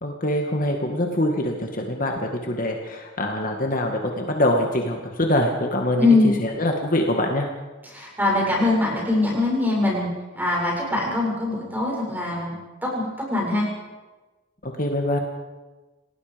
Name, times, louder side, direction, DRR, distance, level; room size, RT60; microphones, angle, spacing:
voice 1, 0.0-6.1 6.4-7.5 14.6-15.2, left 1 dB, 40° left, 2 dB, 2.1 m, -24 dB
voice 2, 6.0-6.3 7.9-12.5 12.8-13.7, left 2 dB, 10° right, -3 dB, 7.3 m, -22 dB
29.0 x 19.0 x 5.3 m, 1.2 s
head